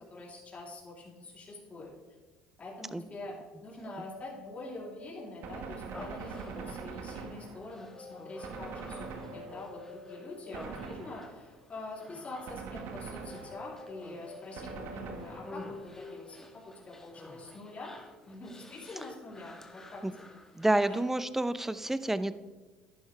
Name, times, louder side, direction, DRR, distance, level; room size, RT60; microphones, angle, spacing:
voice 1, 0.1-1.9 2.6-3.3 3.6-16.5 16.7-17.9 18.3-20.4 20.9-21.0, left 2 dB, 35° left, -4 dB, 3.2 m, -45 dB
sound 1, 3.8-6.5 7.9-11.8 13.1-16.2, left 3 dB, 75° left, 1.2 m, -49 dB
Gunshot gunfire, 5.4-7.9 8.4-9.8 10.5-11.6 12.5-13.8 14.6-15.8, right 5 dB, 65° right, 1.4 m, -43 dB
Human voice, 5.9-21.1, left 1 dB, 10° left, 1.4 m, -52 dB
voice 2, 20.5-22.4, right 1 dB, 10° right, 14 dB, 0.6 m, -29 dB
11.0 x 10.5 x 3.3 m, 1.3 s
supercardioid pair, 80°, 4 cm